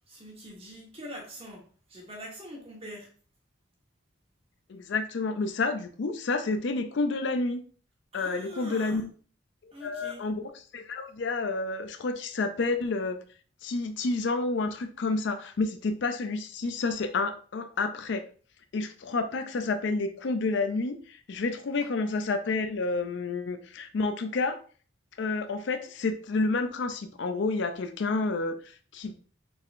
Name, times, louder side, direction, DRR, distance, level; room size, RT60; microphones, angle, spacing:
voice 1, 0.1-3.1 8.1-9.0 9.7-10.3 21.8-21.9, equal, 30° right, -2 dB, 1.2 m, -44 dB
voice 2, 4.7-7.6 8.1-9.1 9.8-13.2 13.6-18.2 18.7-24.6 25.2-29.1, left 3 dB, 60° left, 8 dB, 0.4 m, -29 dB
4.3 x 3.6 x 2.5 m, 0.42 s
head